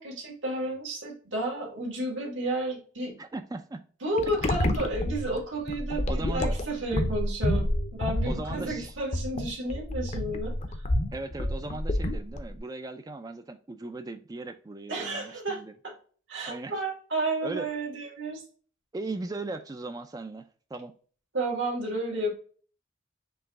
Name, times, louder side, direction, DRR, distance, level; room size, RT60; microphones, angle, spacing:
voice 1, 0.0-3.2 4.0-10.5 14.9-15.9 16.3-18.4 21.3-22.3, right 2 dB, 75° right, 2.0 m, -32 dB
voice 2, 3.2-3.8 6.1-6.6 8.3-9.0 11.1-15.7 16.5-16.8 17.4-17.7 18.9-20.9, right 2 dB, 20° right, 0.3 m, -38 dB
sound 1, 4.2-12.6, left 1 dB, 35° left, 0.5 m, -29 dB
4.6 x 3.0 x 3.5 m
head